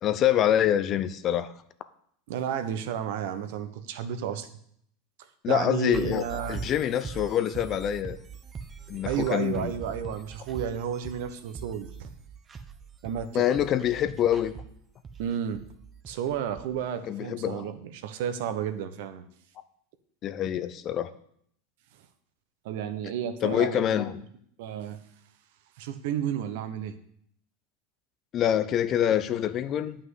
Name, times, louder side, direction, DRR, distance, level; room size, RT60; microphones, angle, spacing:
voice 1, 0.0-1.5 5.4-8.2 8.9-9.7 13.3-14.5 17.1-17.7 20.2-21.1 23.4-24.2 28.3-30.0, left 10 dB, 40° left, 12 dB, 0.8 m, -26 dB
voice 2, 2.3-4.5 5.5-6.6 9.1-12.1 13.0-13.5 15.2-15.6 16.1-19.3 22.6-24.1 24.6-25.0 25.8-26.9, right 8 dB, 70° right, 9 dB, 1.1 m, -32 dB
sound 1, 5.9-16.8, right 5 dB, 25° right, 1.0 m, -42 dB
9.3 x 5.7 x 8.2 m, 0.67 s
hypercardioid pair, 95°, 0 cm